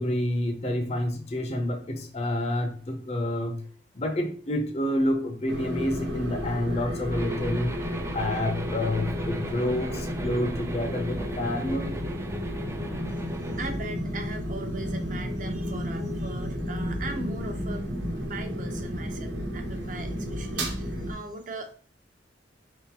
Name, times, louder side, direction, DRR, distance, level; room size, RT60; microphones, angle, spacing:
voice 1, 0.0-3.6 4.0-11.9, left 1 dB, 35° left, 4 dB, 0.5 m, -28 dB
sound 1, 5.5-21.1, equal, 75° right, 1.1 m, -32 dB
sound 2, 7.1-13.6, right 3 dB, 15° right, 0.3 m, -41 dB
voice 2, 13.3-17.8 18.3-21.7, right 2 dB, 45° right, 6 dB, 0.7 m, -39 dB
4.7 x 3.6 x 2.8 m, 0.43 s
head